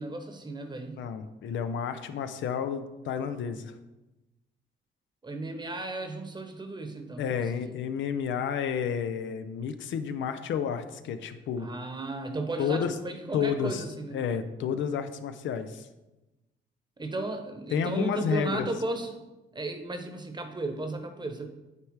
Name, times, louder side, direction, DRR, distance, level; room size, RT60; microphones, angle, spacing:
voice 1, 0.0-1.0 5.2-7.8 11.6-14.2 17.0-19.1 19.5-21.5, right 2 dB, 20° right, 6 dB, 1.1 m, -35 dB
voice 2, 1.0-3.8 7.2-11.7 12.6-13.0 13.3-13.8 14.1-15.9 17.7-18.7, left 7 dB, 70° left, 9 dB, 0.6 m, -31 dB
9.6 x 3.3 x 4.7 m, 1.0 s
cardioid pair, 90°, 20 cm